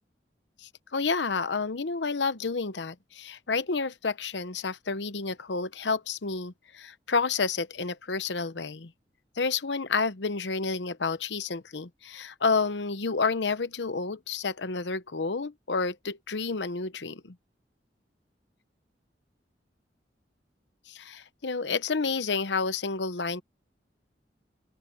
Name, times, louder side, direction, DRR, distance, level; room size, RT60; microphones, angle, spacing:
voice 1, 0.6-8.9 9.4-17.3 20.9-23.4, left 4 dB, 90° left, 0.9 m, -30 dB
open air
head